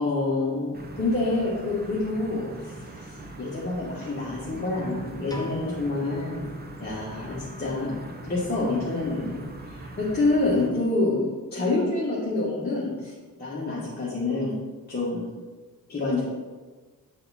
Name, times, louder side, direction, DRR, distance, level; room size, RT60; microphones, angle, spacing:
voice 1, 0.0-2.7 3.0-3.1 3.4-6.5 6.8-8.0 8.2-11.2 11.5-13.1 13.4-14.5 14.9-15.3 15.9-16.2, left 2 dB, 25° left, -7 dB, 1.3 m, -27 dB
sound 1, 0.7-10.7, right 2 dB, 25° right, 0.7 m, -42 dB
sound 2, 5.3-7.2, left 1 dB, 10° left, 0.6 m, -42 dB
8.1 x 4.1 x 4.1 m, 1.3 s
wide cardioid pair, 145°, 36 cm